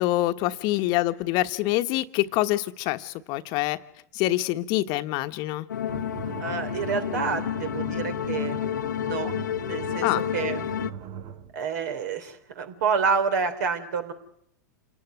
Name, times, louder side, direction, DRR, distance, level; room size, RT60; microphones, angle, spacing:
voice 1, 0.0-3.8 4.1-5.7 10.0-10.2, left 16 dB, 45° left, 10 dB, 1.3 m, -25 dB
sound 1, 5.7-10.9, left 10 dB, 80° left, 1.0 m, -30 dB
sound 2, 5.9-11.5, right 8 dB, 45° right, 1.6 m, -40 dB
voice 2, 6.4-8.7 9.0-9.3 9.6-10.1 10.3-10.7 11.5-14.1, right 6 dB, 65° right, 8 dB, 3.7 m, -28 dB
28.0 x 17.5 x 9.4 m, 0.71 s
hypercardioid pair, 100°, 10 cm